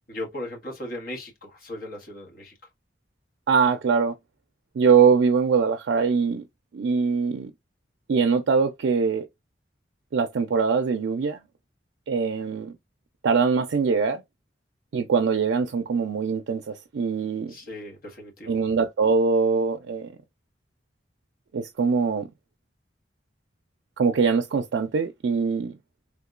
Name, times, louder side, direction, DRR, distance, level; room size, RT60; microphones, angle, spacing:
voice 1, 0.1-2.5 17.5-18.6, left 1 dB, 55° left, 1.4 m, -37 dB
voice 2, 3.5-4.1 4.8-6.4 6.7-7.5 8.1-9.3 10.1-11.4 12.1-12.7 13.2-14.2 14.9-17.5 18.5-20.1 21.5-22.3 24.0-25.7, right 5 dB, 85° right, 0.4 m, -22 dB
3.5 x 2.9 x 2.3 m
head